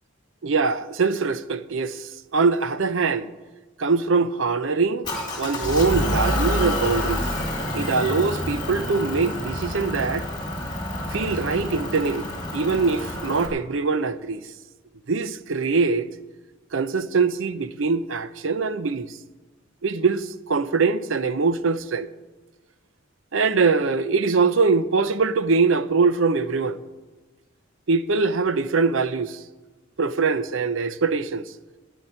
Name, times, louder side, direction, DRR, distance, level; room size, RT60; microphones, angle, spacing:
voice 1, 0.4-3.3 3.8-5.1 5.4-7.3 7.7-10.3 11.1-12.3 12.5-14.4 15.1-16.1 16.7-19.2 19.8-22.1 23.3-26.8 27.9-29.4 30.0-31.5, right 4 dB, 80° right, 0.7 m, -23 dB
Motor vehicle (road) / Engine, 5.0-13.5, left 1 dB, 20° left, 2.3 m, -28 dB
9.8 x 9.2 x 9.4 m
head